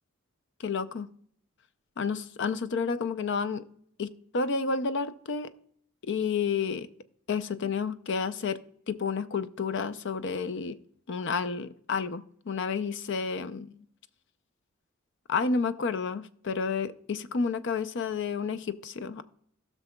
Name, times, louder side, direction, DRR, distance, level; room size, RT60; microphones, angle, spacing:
voice 1, 0.6-1.1 2.0-3.6 4.0-5.5 6.0-6.9 7.3-8.6 8.9-10.8 11.1-13.7 15.3-19.2, left 5 dB, 60° left, 13 dB, 0.5 m, -30 dB
18.0 x 6.1 x 2.2 m, 0.64 s
head